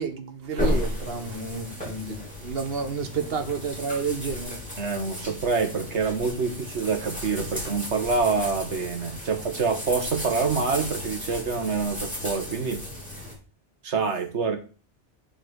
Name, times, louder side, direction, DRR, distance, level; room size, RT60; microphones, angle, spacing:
voice 1, 0.0-4.6, right 5 dB, 55° right, 1.4 m, -31 dB
sound 1, 0.6-13.3, left 1 dB, 5° left, 4.0 m, -34 dB
voice 2, 4.8-12.8 13.8-14.6, right 5 dB, 70° right, 1.7 m, -26 dB
7.8 x 4.3 x 6.2 m
omnidirectional pair, 1.2 m